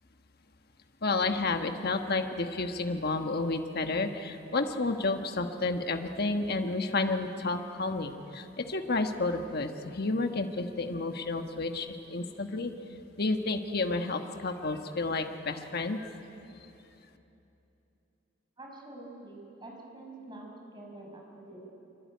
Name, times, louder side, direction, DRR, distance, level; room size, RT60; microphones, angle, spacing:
voice 1, 1.0-12.7 13.2-16.1, left 3 dB, 55° left, 6 dB, 1.4 m, -31 dB
voice 2, 18.6-21.6, right 2 dB, 25° right, 0 dB, 5.6 m, -46 dB
24.0 x 24.0 x 9.6 m, 2.9 s
head